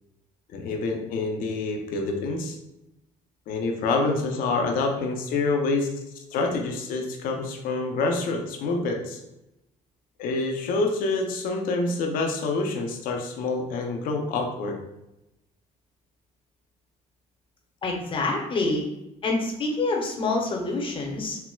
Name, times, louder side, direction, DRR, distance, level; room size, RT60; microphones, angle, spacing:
voice 1, 0.5-2.6 3.5-5.9 6.3-9.2 10.2-14.8, left 3 dB, 65° left, 3 dB, 0.6 m, -27 dB
voice 2, 17.8-18.8 19.2-21.4, left 3 dB, 35° left, 0 dB, 0.8 m, -26 dB
4.4 x 2.0 x 2.2 m, 0.91 s
supercardioid pair, 90°, 15 cm